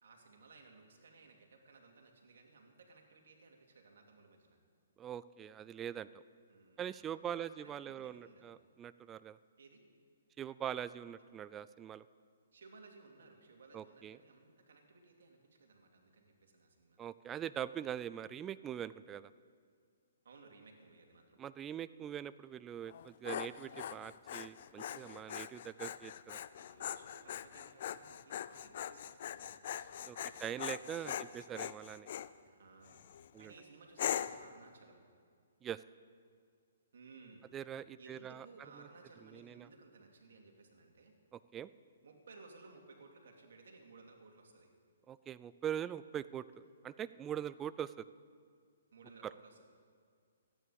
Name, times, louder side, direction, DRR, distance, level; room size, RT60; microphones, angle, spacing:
voice 1, 0.0-4.6 6.5-6.9 7.4-8.5 9.6-9.8 11.1-11.2 12.5-17.0 20.2-21.4 26.6-31.3 32.4-35.1 36.9-37.5 38.0-41.1 42.0-44.7 48.9-49.6, right 3 dB, 70° right, 2 dB, 2.7 m, -59 dB
voice 2, 5.0-6.2 6.8-9.4 10.4-12.1 13.7-14.2 17.0-19.3 21.4-26.4 30.1-32.1 33.3-33.5 35.6-35.8 37.5-38.5 39.3-39.7 41.5-41.7 45.1-48.1 49.2-49.3, right 10 dB, 20° right, 16 dB, 0.3 m, -43 dB
Dog, 22.9-32.3 32.9-33.3 34.0-34.5, left 10 dB, 55° left, 0.5 m, -42 dB
13.5 x 9.8 x 8.6 m, 2.1 s
hypercardioid pair, 135°, 0 cm